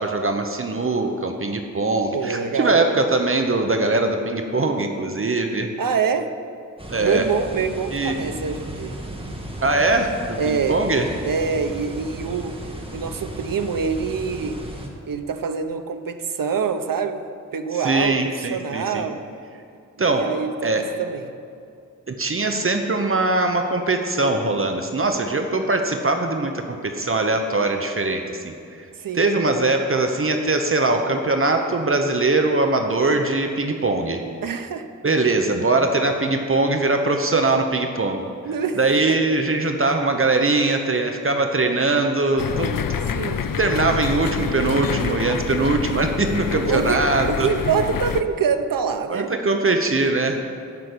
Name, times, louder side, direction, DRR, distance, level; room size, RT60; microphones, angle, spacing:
voice 1, 0.0-5.7 6.9-7.2 7.9-8.2 9.6-11.1 17.8-19.0 20.0-20.3 20.6-20.9 22.1-28.9 29.1-34.2 35.0-38.2 38.8-42.8 43.6-47.5 49.1-50.4, right 2 dB, 40° right, 5 dB, 0.9 m, -21 dB
voice 2, 2.1-2.8 5.8-6.3 7.0-9.0 10.3-10.8 11.2-12.7 12.9-14.6 15.1-17.2 17.5-19.2 20.0-21.3 29.0-29.3 34.4-34.9 38.4-38.8 39.1-39.2 43.1-43.5 46.5-49.3 50.3-50.4, right 6 dB, 85° right, 8 dB, 0.8 m, -25 dB
sound 1, 6.8-14.9, right 1 dB, 15° right, 1.7 m, -35 dB
sound 2, 42.4-48.2, left 7 dB, 85° left, 0.6 m, -27 dB
14.5 x 6.0 x 9.6 m, 2.5 s
wide cardioid pair, 115°, 33 cm